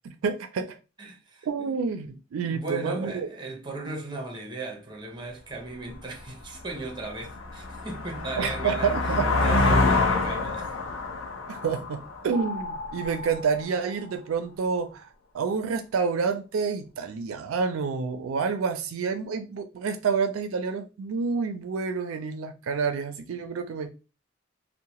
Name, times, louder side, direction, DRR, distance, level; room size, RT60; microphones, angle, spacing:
voice 1, 0.2-0.8 1.5-3.3 8.4-9.3 11.5-15.1 15.3-23.9, right 5 dB, 90° right, 0.4 m, -28 dB
voice 2, 1.0-1.8 2.4-9.0 9.3-10.7, right 3 dB, 25° right, 0.6 m, -36 dB
sound 1, 5.9-6.0 6.5-13.1, left 3 dB, 90° left, 0.5 m, -27 dB
sound 2, 12.3-14.8, left 2 dB, 5° left, 1.3 m, -39 dB
2.7 x 2.1 x 2.9 m
head